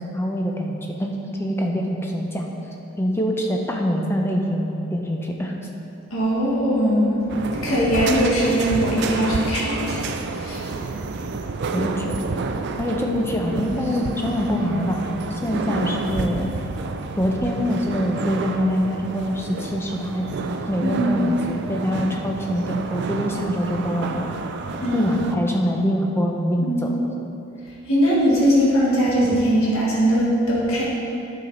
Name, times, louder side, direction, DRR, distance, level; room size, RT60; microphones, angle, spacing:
voice 1, 0.0-2.5 3.0-5.5 11.7-12.2 12.8-15.0 15.3-16.5 17.2-24.3 24.9-27.0, equal, 10° left, 1 dB, 0.6 m, -24 dB
voice 2, 6.1-7.1 7.6-10.1 10.4-10.6 20.9-21.3 24.8-25.1 26.6-26.9 27.9-30.9, equal, 65° left, -5 dB, 1.6 m, -20 dB
sound 1, 7.3-25.4, right 4 dB, 50° right, 0.4 m, -29 dB
8.9 x 5.8 x 3.9 m, 2.9 s
head